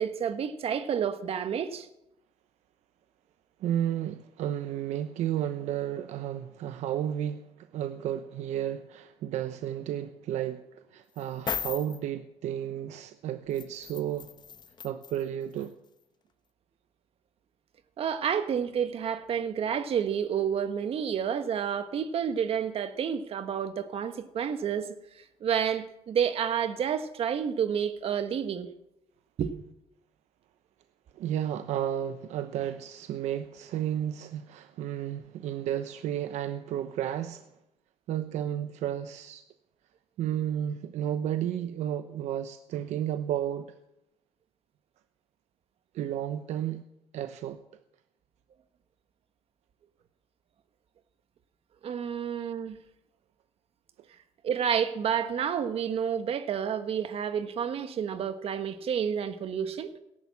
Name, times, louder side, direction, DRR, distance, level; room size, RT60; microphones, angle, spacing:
voice 1, 0.0-1.9 18.0-28.7 29.4-29.5 51.8-52.8 54.4-59.9, right 8 dB, 55° right, 1.5 m, -30 dB
voice 2, 3.6-14.3 14.8-15.8 31.1-37.5 38.1-39.4 40.2-43.7 45.9-46.8 47.1-47.6, right 10 dB, 85° right, 0.8 m, -32 dB
sound 1, 11.2-12.0 13.5-15.2 15.6-15.7, left 7 dB, 40° left, 0.9 m, -36 dB
17.5 x 11.0 x 7.2 m
cardioid pair, 110°, 12 cm